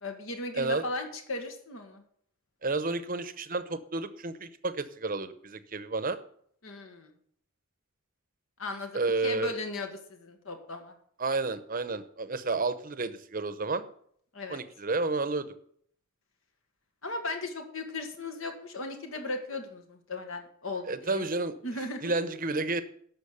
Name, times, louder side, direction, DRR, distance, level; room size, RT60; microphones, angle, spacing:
voice 1, 0.0-2.0 6.6-7.1 8.6-10.9 14.3-14.6 17.0-21.2 21.6-22.1, left 2 dB, 65° left, 4 dB, 1.6 m, -37 dB
voice 2, 2.6-6.2 8.9-9.6 11.2-13.8 14.5-15.5 20.9-21.5 22.0-22.8, right 3 dB, 40° right, 12 dB, 0.8 m, -31 dB
11.5 x 6.3 x 6.8 m, 0.63 s
head